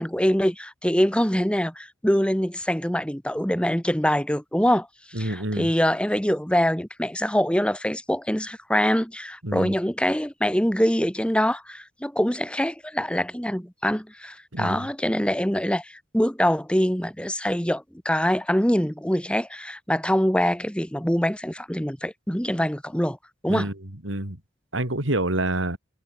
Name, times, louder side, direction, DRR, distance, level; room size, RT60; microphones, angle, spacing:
voice 1, 0.0-4.9 5.2-23.2 23.4-23.7, equal, 5° left, 2.5 m, -24 dB
voice 2, 5.1-5.7 9.4-9.7 14.5-14.9 23.5-23.8 24.0-24.4 24.7-25.8, right 1 dB, 85° right, 4.0 m, -27 dB
head